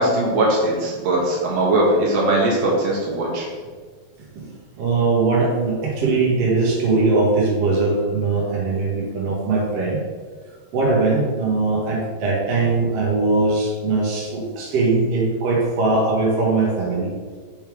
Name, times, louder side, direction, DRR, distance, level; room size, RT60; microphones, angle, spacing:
voice 1, 0.0-3.5, right 1 dB, 75° right, -3 dB, 1.5 m, -20 dB
voice 2, 4.8-10.0 10.7-17.1, right 3 dB, 90° right, -4 dB, 1.4 m, -20 dB
6.2 x 3.5 x 4.6 m, 1.5 s
omnidirectional pair, 4.5 m